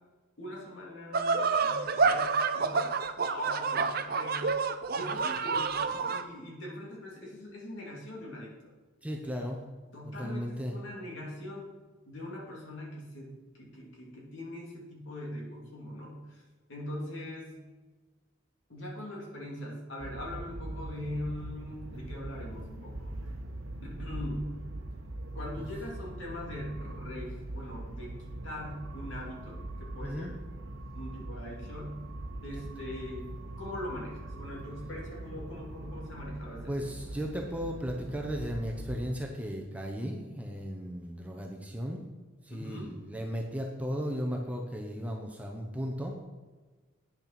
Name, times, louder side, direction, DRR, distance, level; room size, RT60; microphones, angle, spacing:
voice 1, 0.4-3.0 3.3-4.6 4.9-8.5 9.9-11.7 12.1-16.4 16.7-17.6 18.7-23.3 23.8-24.6 25.3-30.4 30.9-32.1 32.4-33.3 33.6-36.9 42.5-42.9, left 1 dB, 65° left, -3 dB, 2.8 m, -41 dB
sound 1, 1.1-6.2, right 4 dB, 45° right, 0.5 m, -28 dB
voice 2, 9.0-9.6 10.1-10.8 25.6-25.7 30.0-30.3 36.7-42.0 42.4-46.2, equal, 5° right, 0 dB, 0.8 m, -35 dB
sound 2, 20.0-39.2, right 1 dB, 75° right, 0.9 m, -42 dB
8.9 x 6.5 x 5.9 m, 1.3 s
head